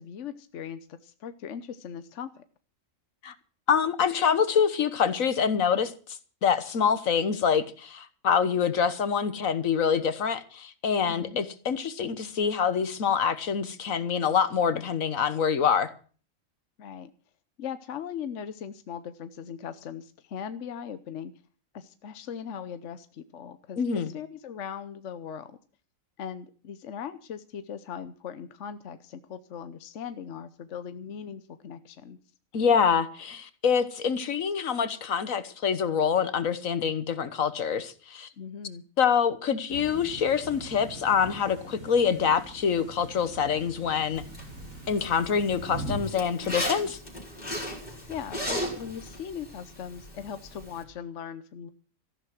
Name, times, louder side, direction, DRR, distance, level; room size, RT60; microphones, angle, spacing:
voice 1, 0.0-2.4 11.0-11.4 16.8-17.1 17.6-21.3 21.7-25.6 26.2-32.2 38.4-38.8 48.1-51.7, left 8 dB, 65° left, 1.2 m, -39 dB
voice 2, 3.7-5.9 6.4-15.9 23.8-24.1 32.5-38.3 39.0-44.2 44.9-47.0, left 7 dB, 80° left, 1.6 m, -25 dB
sound 1, 39.7-46.0, right 1 dB, 85° right, 4.5 m, -42 dB
Zipper (clothing), 44.1-50.8, equal, 35° left, 4.4 m, -37 dB
14.5 x 11.0 x 6.1 m
omnidirectional pair, 1.4 m